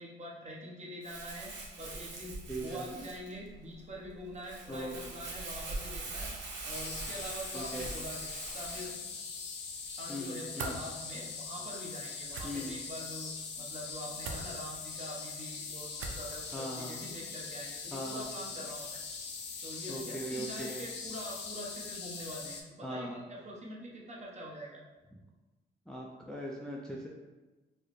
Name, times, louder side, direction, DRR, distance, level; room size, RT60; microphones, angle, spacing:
voice 1, 0.0-1.5 1.8-6.3 6.6-8.3 8.5-9.0 10.0-13.3 13.6-19.0 19.6-24.8, equal, 35° right, -3 dB, 1.0 m, -44 dB
Crumpling crinkling, 1.0-9.0, right 2 dB, 65° right, 0.9 m, -42 dB
voice 2, 2.5-2.8 4.7-5.1 7.5-7.9 10.1-10.8 12.4-12.8 16.5-17.0 17.9-18.3 19.9-20.8 22.8-23.2 25.9-27.1, equal, 5° left, -3 dB, 0.4 m, -40 dB
sound 1, 6.7-22.6, left 5 dB, 60° left, 0.6 m, -42 dB
sound 2, 10.6-10.8 12.3-12.5 14.2-14.4 16.0-16.3, right 4 dB, 90° right, 0.5 m, -39 dB
4.5 x 2.1 x 3.1 m, 1.2 s
cardioid pair, 90°, 20 cm